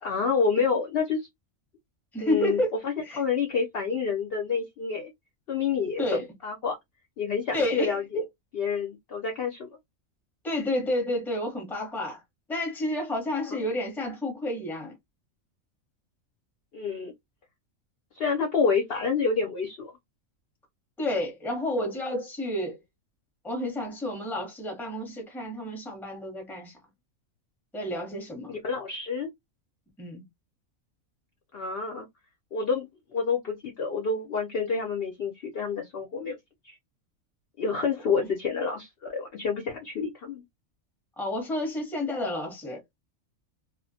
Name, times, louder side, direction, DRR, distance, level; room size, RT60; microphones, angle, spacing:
voice 1, 0.0-1.3 2.2-5.1 5.5-6.8 7.2-8.2 8.5-9.8 13.5-13.7 16.7-17.1 18.1-19.9 28.5-29.3 31.5-32.1 32.5-36.3 36.6-36.8 37.6-40.4, left 5 dB, 60° left, 0.6 m, -28 dB
voice 2, 2.1-2.7 3.0-3.2 6.0-6.3 7.5-8.2 10.4-12.2 12.5-15.0 21.0-22.8 23.4-26.8 27.7-28.6 30.0-30.2 41.2-42.8, left 1 dB, ahead, 0.7 m, -30 dB
2.3 x 2.1 x 2.5 m
omnidirectional pair, 1.4 m